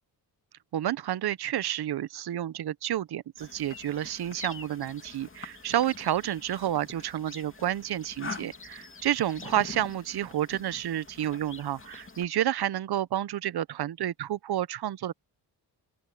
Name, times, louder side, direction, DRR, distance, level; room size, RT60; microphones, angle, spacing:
voice 1, 0.7-15.1, right 12 dB, 65° right, 0.8 m, -30 dB
sound 1, 3.4-12.2, left 4 dB, 30° left, 2.9 m, -45 dB
open air
cardioid pair, 85°, 42 cm